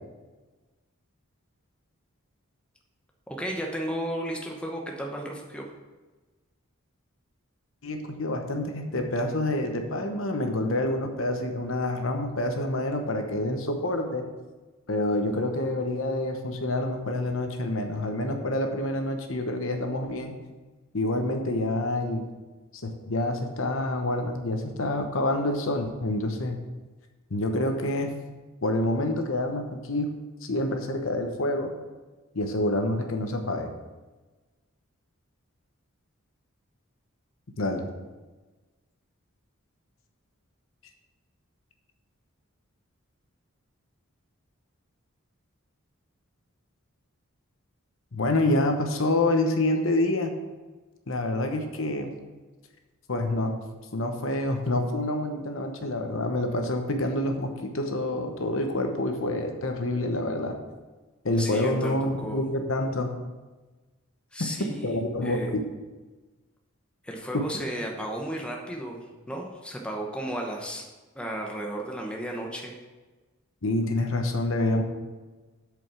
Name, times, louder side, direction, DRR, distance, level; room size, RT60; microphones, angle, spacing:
voice 1, 3.3-5.7 61.4-62.5 64.3-65.5 67.0-70.9 71.1-72.7, right 1 dB, 5° left, 0 dB, 0.9 m, -34 dB
voice 2, 7.8-14.3 14.9-20.4 20.9-22.2 22.8-26.6 27.3-28.1 28.6-30.1 30.4-31.7 32.3-33.7 37.6-37.8 48.1-50.3 51.1-52.1 53.1-53.5 53.9-60.5 61.2-63.1 64.4-64.5 64.8-65.6 67.3-67.5 73.6-74.8, left 1 dB, 70° left, 5 dB, 1.0 m, -27 dB
7.9 x 5.2 x 5.9 m, 1.2 s
head